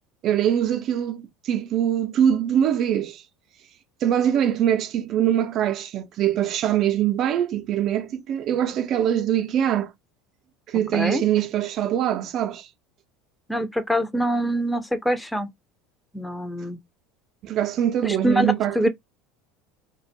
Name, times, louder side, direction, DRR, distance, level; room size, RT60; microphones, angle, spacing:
voice 1, 0.2-3.2 4.0-9.9 10.7-12.7 17.4-18.9, right 10 dB, 50° right, 0.4 m, -23 dB
voice 2, 10.9-11.2 13.5-15.5 16.1-16.8 18.0-18.9, equal, 5° left, 0.5 m, -24 dB
2.4 x 2.1 x 2.6 m
supercardioid pair, 95°, 0 cm